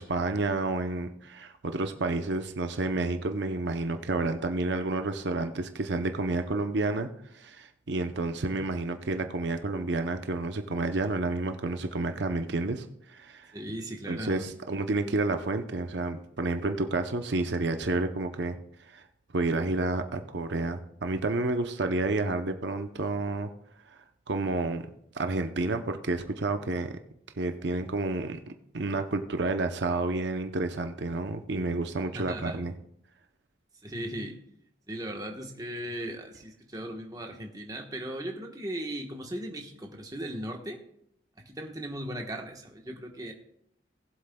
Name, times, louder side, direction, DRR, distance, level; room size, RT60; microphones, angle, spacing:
voice 1, 0.0-7.1 7.3-13.5 14.1-18.6 18.9-19.0 19.3-23.5 24.3-24.9 25.1-27.0 27.4-28.4 28.7-32.7, right 2 dB, 70° right, 7 dB, 0.7 m, -30 dB
voice 2, 13.5-14.4 32.1-32.6 33.8-34.4 34.9-40.8 41.4-43.3, right 1 dB, 20° right, 2 dB, 1.2 m, -37 dB
20.0 x 7.8 x 2.3 m, 0.74 s
head